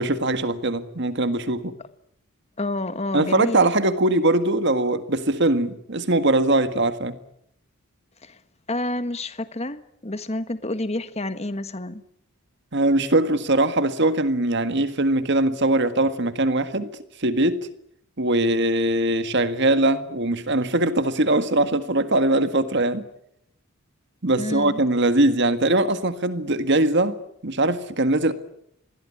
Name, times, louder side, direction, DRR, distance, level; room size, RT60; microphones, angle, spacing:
voice 1, 0.0-1.7 3.1-7.1 12.7-16.9 17.2-17.7 18.2-23.0 24.2-27.2 27.4-28.3, right 2 dB, 50° right, 1.7 m, -21 dB
voice 2, 2.6-3.7 8.2-8.4 8.7-12.0 24.4-24.8, left 1 dB, 30° left, 1.5 m, -29 dB
26.5 x 21.0 x 9.8 m
head